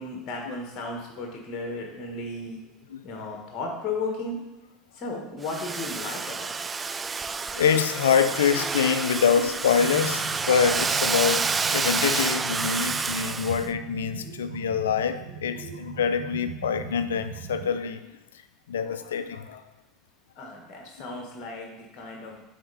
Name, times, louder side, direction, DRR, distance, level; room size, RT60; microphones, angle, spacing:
voice 1, 0.0-2.6 3.0-4.4 4.9-6.7 14.2-14.3 15.5-15.8 20.4-22.5, left 3 dB, 45° left, 1 dB, 1.5 m, -35 dB
Domestic sounds home sounds, 5.4-13.7, right 4 dB, 20° right, 0.3 m, -29 dB
voice 2, 7.5-18.1 18.7-19.6, left 7 dB, 75° left, 11 dB, 0.5 m, -25 dB
sound 1, 9.8-17.7, right 8 dB, 60° right, 1.2 m, -41 dB
9.3 x 4.3 x 4.1 m, 1.0 s
figure-of-eight pair, 75°, 0 cm